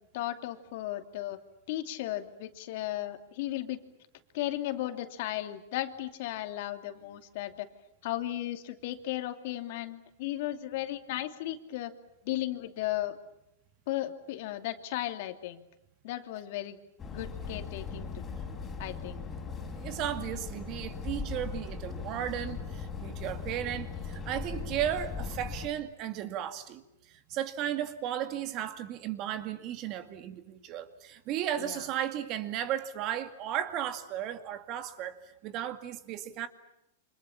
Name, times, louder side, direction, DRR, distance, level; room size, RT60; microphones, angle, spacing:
voice 1, 0.1-1.4 1.7-3.8 4.3-7.7 8.0-11.9 12.2-13.2 13.9-15.6 16.0-16.8 17.1-18.2 18.8-19.2 31.6-31.8, left 14 dB, 55° left, 2.7 m, -35 dB
sound 1, 17.0-25.7, left 4 dB, 15° left, 4.5 m, -39 dB
voice 2, 19.8-36.5, right 11 dB, 35° right, 2.2 m, -35 dB
29.5 x 26.5 x 7.2 m
supercardioid pair, 155°, 0 cm